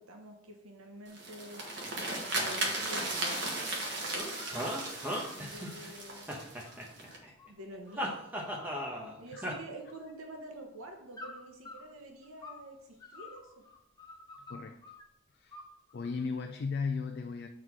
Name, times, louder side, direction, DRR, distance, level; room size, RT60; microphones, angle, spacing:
voice 1, 0.0-1.6 2.1-4.9 5.4-6.5 7.5-8.2 9.2-13.5, right 1 dB, 85° right, 1.0 m, -48 dB
sound 1, 1.1-7.2, right 2 dB, 55° right, 1.4 m, -36 dB
sound 2, 2.0-2.4 2.8-3.7 4.0-4.9 5.4-8.1 8.6-9.0 9.3-10.3 11.1-12.7 13.0-15.0 15.5-16.2, left 3 dB, 20° left, 0.9 m, -51 dB
sound 3, 4.2-5.9 6.3-7.3 8.0-9.1 9.4-9.5, equal, 10° right, 1.0 m, -36 dB
voice 2, 15.9-17.5, left 5 dB, 50° left, 0.4 m, -35 dB
7.5 x 4.1 x 4.6 m
head